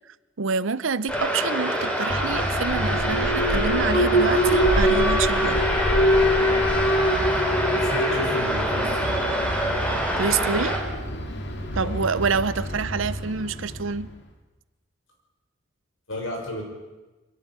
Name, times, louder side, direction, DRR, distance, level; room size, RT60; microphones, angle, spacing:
voice 1, 0.4-5.6 10.2-10.8 11.7-14.1, right 5 dB, 70° right, 17 dB, 0.7 m, -27 dB
sound 1, 1.1-10.8, equal, 5° left, 3.8 m, -26 dB
Alarm, 2.1-14.1, equal, 60° left, 2.3 m, -25 dB
voice 2, 7.7-9.4 11.8-12.0 16.1-16.6, left 1 dB, 75° left, 0 dB, 6.1 m, -34 dB
24.0 x 12.0 x 9.5 m, 1.2 s
head